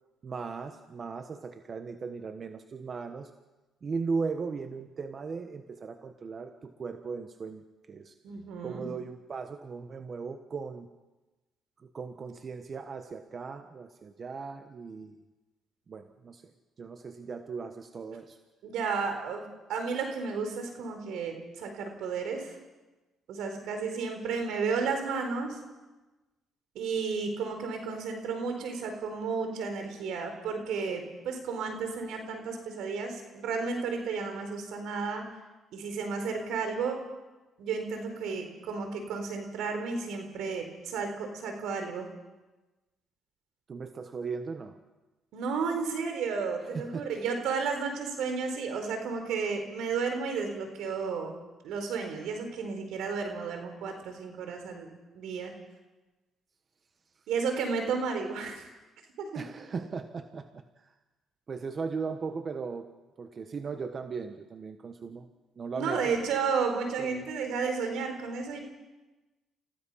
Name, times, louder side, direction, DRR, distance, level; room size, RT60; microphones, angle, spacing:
voice 1, 0.2-3.3 3.8-7.6 7.9-8.1 8.6-10.9 11.8-15.1 15.9-16.4 16.8-18.4 43.7-44.8 46.6-47.1 59.3-60.9 61.5-62.9 63.2-65.3 65.6-66.2 67.0-67.3, right 5 dB, 45° right, 7 dB, 1.3 m, -37 dB
voice 2, 8.2-8.9 18.6-19.4 19.7-22.6 23.3-25.6 26.7-35.2 35.7-37.0 37.6-42.1 45.3-51.3 51.6-54.9 55.1-55.5 57.3-58.7 59.2-59.4 65.7-68.6, right 5 dB, 80° right, 5 dB, 4.2 m, -32 dB
29.5 x 16.0 x 5.7 m, 1.1 s
cardioid pair, 80°, 0 cm